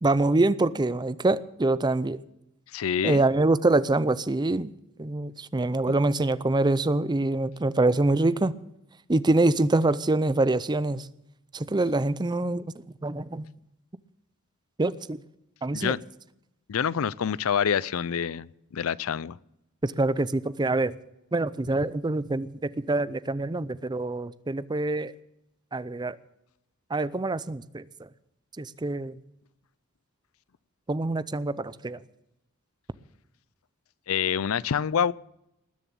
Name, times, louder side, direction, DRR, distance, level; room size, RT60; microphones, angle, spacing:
voice 1, 0.0-2.2 3.0-4.7 5.0-8.5 9.1-11.1 11.5-13.5 14.8-15.2 15.6-15.9 19.8-20.9 21.3-25.1 25.7-26.2 26.9-27.8 28.6-29.1 30.9-32.0, right 2 dB, 20° right, 0.5 m, -25 dB
voice 2, 2.7-3.3 5.9-6.0 15.7-16.0 16.7-19.4 34.1-35.1, left 7 dB, 75° left, 0.5 m, -27 dB
20.0 x 7.1 x 8.7 m
head